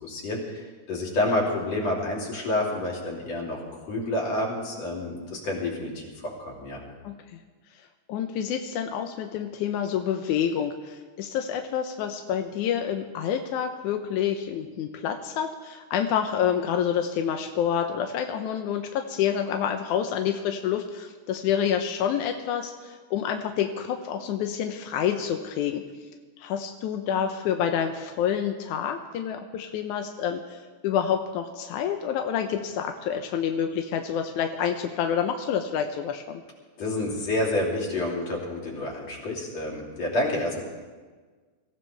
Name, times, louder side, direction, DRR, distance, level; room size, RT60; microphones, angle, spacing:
voice 1, 0.0-6.8 36.8-40.6, left 1 dB, 45° left, -3 dB, 3.9 m, -29 dB
voice 2, 8.1-25.8 26.4-36.4, left 8 dB, 75° left, 5 dB, 1.9 m, -28 dB
24.5 x 15.5 x 3.4 m, 1.4 s
omnidirectional pair, 4.3 m